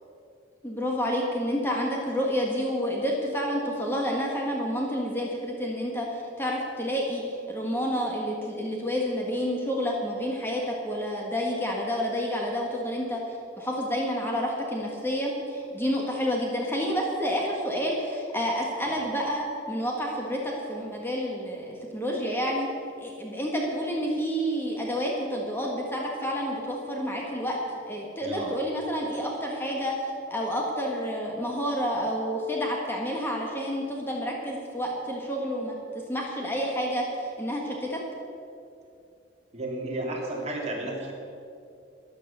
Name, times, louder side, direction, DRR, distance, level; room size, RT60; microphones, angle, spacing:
voice 1, 0.6-13.2 13.6-22.7 23.0-27.6 27.9-29.9 30.3-35.7 36.1-38.0, equal, 10° left, -1 dB, 1.7 m, -29 dB
voice 2, 28.2-28.6 39.5-41.1, right 1 dB, 35° right, -2 dB, 2.8 m, -33 dB
13.0 x 10.5 x 6.8 m, 2.5 s
head